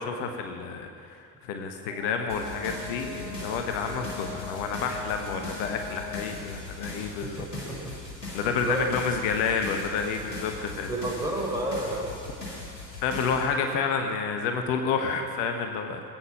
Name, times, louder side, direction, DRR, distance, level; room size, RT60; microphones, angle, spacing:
voice 1, 0.0-7.4 8.3-10.9 13.0-16.0, left 5 dB, 65° left, 5 dB, 1.2 m, -29 dB
Brass instrument, 1.8-6.3, left 3 dB, 85° right, 3.4 m, -41 dB
sound 1, 2.3-13.5, left 3 dB, 90° left, 2.0 m, -40 dB
voice 2, 7.2-7.9 8.5-8.9 10.7-12.1, right 1 dB, 5° right, -2 dB, 4.6 m, -32 dB
19.0 x 9.1 x 6.3 m, 2.3 s
figure-of-eight pair, 50°, 48 cm